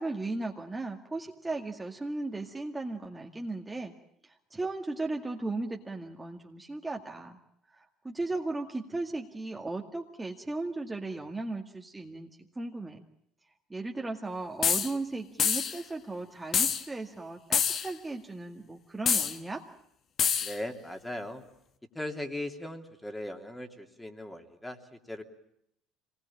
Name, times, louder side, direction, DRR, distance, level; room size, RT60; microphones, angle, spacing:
voice 1, 0.0-3.9 4.2-7.4 7.8-12.3 12.6-13.0 13.7-19.6, right 2 dB, 15° right, 1 dB, 2.0 m, -36 dB
sound 1, 14.6-14.9 15.4-15.8 16.5-16.8 17.5-17.9 19.1-19.3 20.2-20.5, left 7 dB, 50° left, 1.7 m, -26 dB
voice 2, 20.4-21.4 21.9-25.2, left 1 dB, 10° left, 5 dB, 2.8 m, -38 dB
25.0 x 19.5 x 8.7 m, 0.76 s
supercardioid pair, 75°, 0 cm